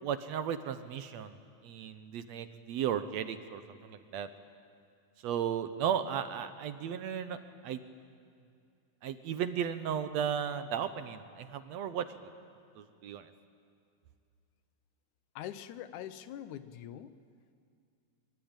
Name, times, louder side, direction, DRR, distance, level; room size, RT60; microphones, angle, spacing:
voice 1, 0.0-1.4 1.6-4.3 5.2-7.8 9.0-12.1 12.8-13.3, right 8 dB, 70° right, 10 dB, 1.9 m, -35 dB
voice 2, 15.4-17.1, left 11 dB, 80° left, 12 dB, 2.3 m, -43 dB
24.0 x 23.5 x 8.9 m, 2.4 s
omnidirectional pair, 3.5 m